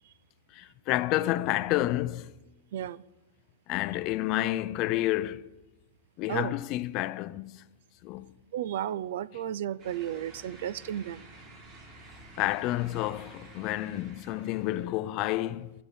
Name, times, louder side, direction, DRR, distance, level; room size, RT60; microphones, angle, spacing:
voice 1, 0.5-2.3 3.7-5.5 6.2-7.6 8.0-8.3 12.4-15.7, left 16 dB, 35° left, 0.5 m, -30 dB
voice 2, 2.7-3.0 6.3-6.5 8.5-11.3, right 11 dB, 60° right, 0.4 m, -33 dB
sound 1, 9.8-14.9, right 2 dB, 30° right, 2.8 m, -51 dB
13.5 x 7.1 x 9.9 m
supercardioid pair, 160°, 0 cm